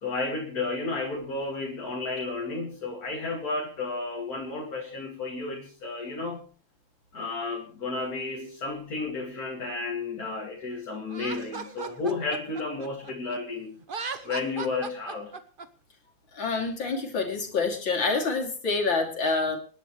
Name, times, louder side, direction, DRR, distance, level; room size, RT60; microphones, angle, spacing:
voice 1, 0.0-6.4 7.1-13.7 14.2-15.3, left 3 dB, 50° left, -1 dB, 2.8 m, -32 dB
Laughter, 11.1-13.4 13.8-15.7, right 5 dB, 35° right, 1.0 m, -37 dB
voice 2, 16.3-19.6, left 4 dB, 75° left, 2 dB, 3.5 m, -27 dB
27.0 x 11.0 x 3.2 m, 0.39 s
omnidirectional pair, 2.1 m